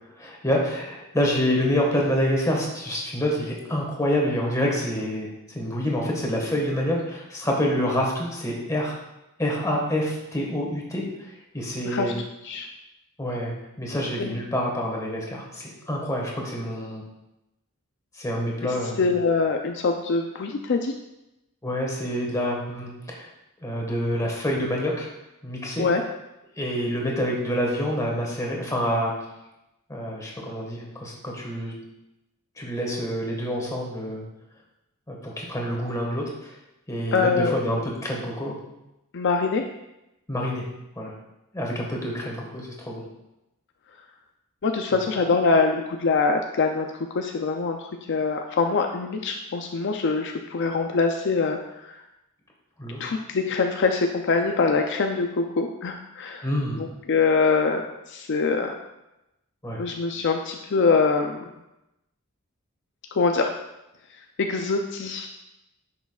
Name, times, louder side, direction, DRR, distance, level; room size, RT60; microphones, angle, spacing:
voice 1, 0.2-8.9 9.4-12.2 13.2-17.0 18.1-19.1 21.6-23.3 23.6-25.1 25.4-25.9 26.6-29.1 29.9-31.7 32.6-34.2 35.1-36.6 36.9-38.5 40.3-40.7 40.9-41.1 41.5-43.0 44.9-45.0 52.8-53.0 56.4-56.8 59.6-59.8, equal, 15° left, -2 dB, 1.6 m, -27 dB
voice 2, 19.0-20.9 25.8-26.0 37.1-37.6 39.1-39.6 44.6-46.9 47.1-51.9 53.0-56.5 56.8-57.8 58.1-58.7 59.8-61.4 63.1-63.5 64.4-65.3, left 4 dB, 55° left, 4 dB, 0.5 m, -24 dB
10.0 x 5.8 x 2.4 m, 0.92 s
head